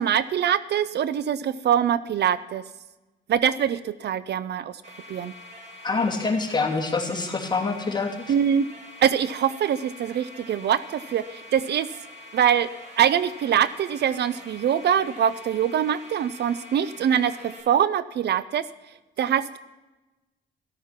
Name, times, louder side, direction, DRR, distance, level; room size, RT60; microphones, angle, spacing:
voice 1, 0.0-2.6 3.3-4.8 5.1-5.3 8.3-8.7 9.0-11.9 12.3-12.7 13.0-18.7 19.2-19.6, right 9 dB, 60° right, 16 dB, 0.5 m, -23 dB
sound 1, 4.8-17.6, left 1 dB, 35° right, 5.4 m, -45 dB
voice 2, 5.8-8.3, left 4 dB, 20° left, -1 dB, 2.6 m, -26 dB
13.0 x 13.0 x 5.9 m, 1.1 s
cardioid pair, 90°, 20 cm